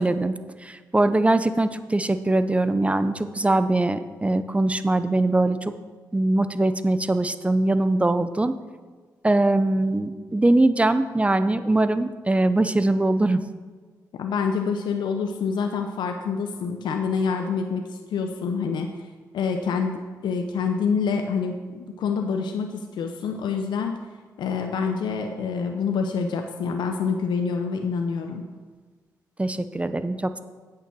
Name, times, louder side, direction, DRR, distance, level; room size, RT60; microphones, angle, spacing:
voice 1, 0.0-5.7 6.1-8.5 9.2-13.4 29.4-30.4, right 2 dB, 15° right, 11 dB, 0.6 m, -22 dB
voice 2, 14.2-18.9 19.3-23.9 24.4-28.4, left 5 dB, 85° left, 4 dB, 0.6 m, -27 dB
8.3 x 6.7 x 6.1 m, 1.4 s
cardioid pair, 65°, 7 cm